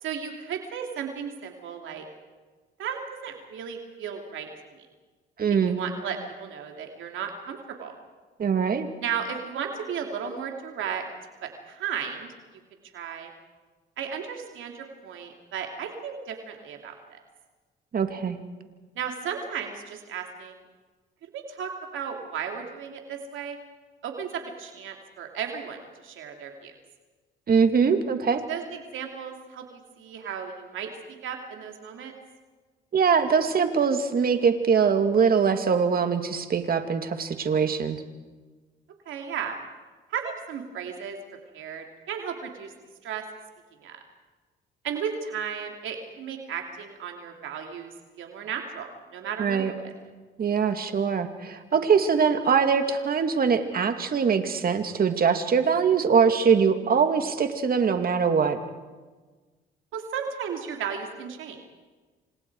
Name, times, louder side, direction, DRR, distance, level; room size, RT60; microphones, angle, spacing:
voice 1, 0.0-2.0 2.8-4.5 4.8-4.9 5.7-7.9 9.0-11.0 11.4-12.3 12.9-13.3 14.0-17.2 19.0-20.6 21.3-23.6 24.0-26.7 28.5-30.9 31.2-32.1 39.1-39.6 40.1-41.2 41.5-42.7 43.0-43.2 43.8-44.0 44.8-47.9 48.2-49.9 59.9-61.6, right 7 dB, 80° right, 3 dB, 2.8 m, -34 dB
voice 2, 5.4-5.8 8.4-8.9 17.9-18.4 27.5-28.4 32.9-38.0 49.4-49.7 50.4-58.6, right 6 dB, 50° right, 7 dB, 2.4 m, -22 dB
28.5 x 26.5 x 4.8 m, 1.3 s
cardioid pair, 90°, 20 cm